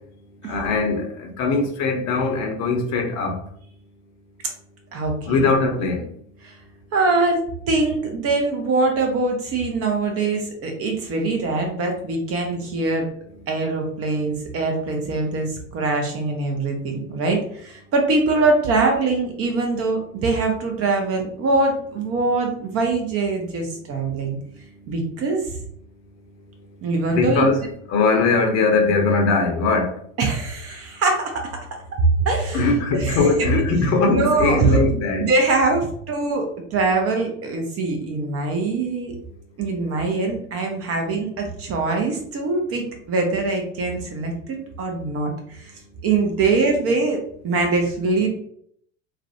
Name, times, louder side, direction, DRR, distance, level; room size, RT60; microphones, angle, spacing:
voice 1, 0.5-3.4 5.3-6.0 27.1-29.9 32.5-35.3, left 4 dB, 40° left, 2 dB, 0.7 m, -20 dB
voice 2, 4.9-5.4 6.4-6.5 6.9-13.1 13.5-24.4 24.9-25.5 26.8-27.5 30.2-31.6 32.0-33.5 34.1-34.8 35.2-39.2 39.6-44.3 44.8-45.7 46.0-47.2 47.4-48.3, right 3 dB, 35° right, 3 dB, 0.7 m, -23 dB
2.4 x 2.1 x 2.5 m, 0.64 s
hypercardioid pair, 80°, 40 cm